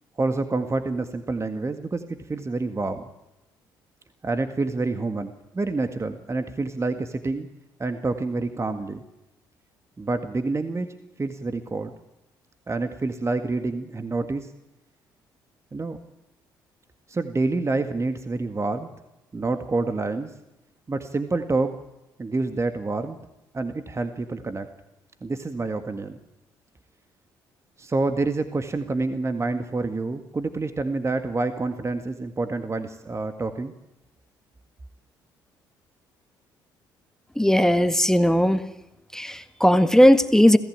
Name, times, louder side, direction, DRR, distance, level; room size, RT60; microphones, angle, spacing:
voice 1, 0.2-3.0 4.2-7.5 7.8-9.0 10.0-10.9 11.2-11.9 12.7-14.5 15.7-16.0 17.1-18.9 19.3-20.3 20.9-21.7 22.2-23.2 23.5-24.7 25.2-26.2 27.8-33.7, right 3 dB, 30° right, 8 dB, 1.8 m, -27 dB
voice 2, 37.3-38.7 39.1-40.6, equal, 5° left, 10 dB, 1.6 m, -17 dB
26.5 x 15.0 x 8.8 m, 0.97 s
hypercardioid pair, 50°, 10 cm